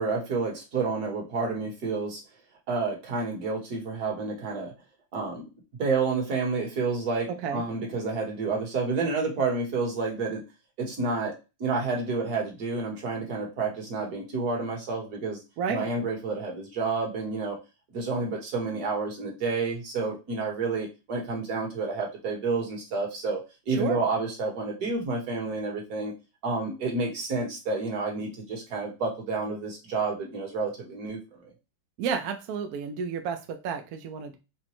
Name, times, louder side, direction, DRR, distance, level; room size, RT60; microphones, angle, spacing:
voice 1, 0.0-2.2 2.7-4.7 5.1-5.5 5.8-10.4 10.8-11.3 11.6-15.4 15.7-17.6 17.9-23.4 23.7-26.1 26.4-31.5, right 4 dB, 55° right, 0 dB, 1.6 m, -29 dB
voice 2, 23.7-24.0 32.0-34.4, right 6 dB, 80° right, 5 dB, 0.8 m, -31 dB
4.9 x 2.2 x 3.0 m, 0.27 s
omnidirectional pair, 2.2 m